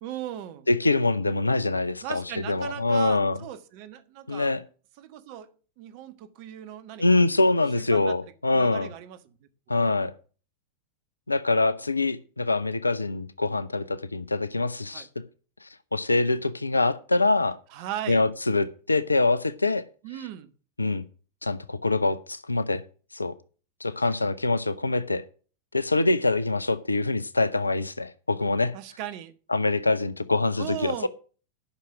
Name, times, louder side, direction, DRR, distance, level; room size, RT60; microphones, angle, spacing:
voice 1, 0.0-0.7 2.0-4.5 5.0-5.5 5.8-7.2 7.7-8.2 8.5-9.4 14.9-15.1 17.7-18.2 20.0-20.5 28.7-29.3 30.6-31.1, right 12 dB, 45° right, 1.5 m, -37 dB
voice 2, 0.7-3.4 4.3-4.6 7.0-8.9 9.7-10.1 11.3-15.1 15.6-17.6 18.1-19.8 20.8-21.0 21.4-22.8 23.1-23.3 23.8-25.2 25.7-28.7 29.5-31.1, left 2 dB, 80° left, 0.6 m, -24 dB
11.5 x 6.3 x 6.1 m
figure-of-eight pair, 90°, 0 cm